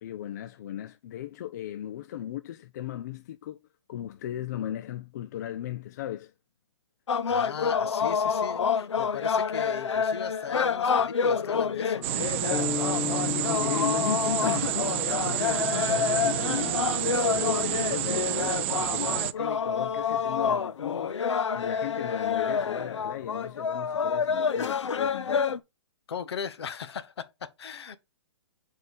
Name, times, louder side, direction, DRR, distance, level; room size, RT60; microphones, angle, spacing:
voice 1, 0.0-3.6 3.9-6.3 13.1-16.9 17.3-21.2 21.5-25.5, left 11 dB, 40° left, 0.4 m, -36 dB
sound 1, 7.1-25.6, left 6 dB, 90° left, 0.7 m, -28 dB
voice 2, 7.3-12.2 26.1-28.0, left 7 dB, 65° left, 1.0 m, -38 dB
sound 2, 12.0-19.3, right 14 dB, 25° right, 0.3 m, -29 dB
sound 3, 12.5-16.4, left 7 dB, 15° left, 1.1 m, -35 dB
6.2 x 4.4 x 5.1 m
hypercardioid pair, 155°, 15 cm